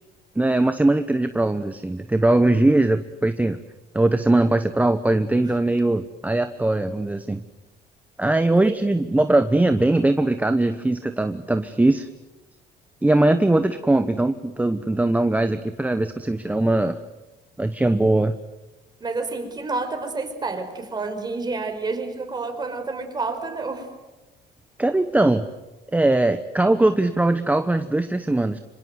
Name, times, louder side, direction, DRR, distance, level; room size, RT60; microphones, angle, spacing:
voice 1, 0.4-3.6 3.9-7.4 8.2-12.1 13.0-17.0 17.6-18.3 24.8-25.5 25.9-28.6, right 2 dB, 10° right, 9 dB, 1.0 m, -20 dB
voice 2, 19.0-23.9, right 3 dB, 25° right, 5 dB, 5.1 m, -29 dB
26.0 x 25.5 x 7.9 m, 1.1 s
cardioid pair, 110°, 17 cm